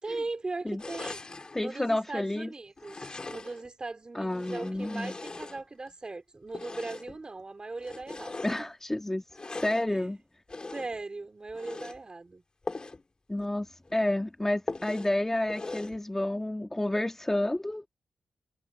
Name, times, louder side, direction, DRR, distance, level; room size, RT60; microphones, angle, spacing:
voice 1, 0.0-1.2 1.6-8.4 9.9-10.1 10.7-12.4, right 3 dB, 35° right, 3.2 m, -39 dB
sound 1, 0.8-1.6 2.8-3.7 4.3-5.9 6.5-7.2 7.8-8.7 9.3-9.9 10.5-11.0 11.5-12.0 12.6-13.0 13.4-13.5 13.9-14.0 14.7-15.2 15.5-16.0, left 3 dB, 35° left, 2.1 m, -40 dB
voice 2, 1.5-2.5 4.1-5.1 8.4-9.2 9.5-10.2 13.3-17.9, left 1 dB, 15° left, 2.0 m, -30 dB
cardioid pair, 70°, 3 cm